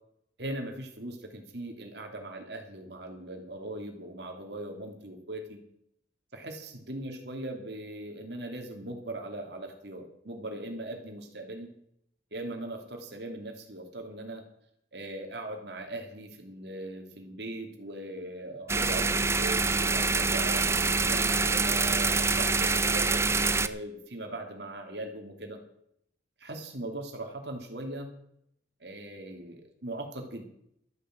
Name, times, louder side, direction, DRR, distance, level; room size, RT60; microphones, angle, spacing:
voice 1, 0.4-5.6 6.3-11.7 12.3-14.4 14.9-20.6 21.0-25.6 26.4-28.1 28.8-30.4, right 1 dB, 65° right, 3 dB, 2.8 m, -40 dB
sound 1, 18.7-23.7, right 4 dB, 15° right, 0.5 m, -25 dB
13.0 x 8.7 x 7.7 m, 0.74 s
head